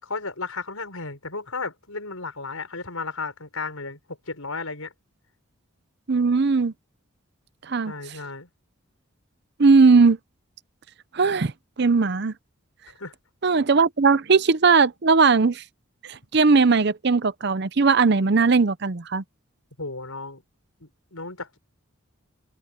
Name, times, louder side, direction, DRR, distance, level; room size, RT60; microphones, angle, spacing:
voice 1, 0.0-4.0 4.3-4.9 7.8-8.5 13.0-13.1 19.8-20.4 20.8-21.6, left 3 dB, 80° left, 5.9 m, -34 dB
voice 2, 6.1-6.7 7.7-8.2 9.6-10.2 11.1-11.5 11.8-12.3 13.4-15.6 16.0-19.2, right 4 dB, 50° right, 0.6 m, -19 dB
head